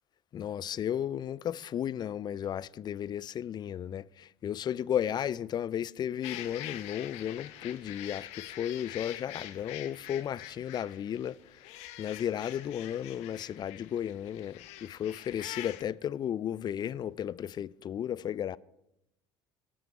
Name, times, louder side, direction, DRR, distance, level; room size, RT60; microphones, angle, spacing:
voice 1, 0.3-11.4 12.0-18.6, left 10 dB, 35° left, 0.4 m, -34 dB
sound 1, 6.2-15.8, left 13 dB, 60° left, 0.8 m, -45 dB
18.5 x 6.3 x 4.5 m
hypercardioid pair, 65°, 13 cm